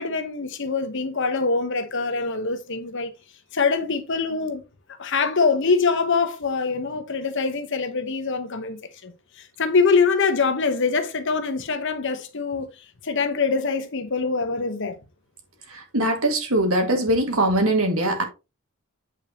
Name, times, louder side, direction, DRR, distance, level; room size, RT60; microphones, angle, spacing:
voice 1, 0.0-3.1 3.5-4.6 5.0-9.1 9.6-12.7 13.0-15.0, left 4 dB, 60° left, 1.0 m, -24 dB
voice 2, 15.7-18.2, right 1 dB, 80° right, 2.1 m, -22 dB
8.5 x 5.1 x 2.9 m
head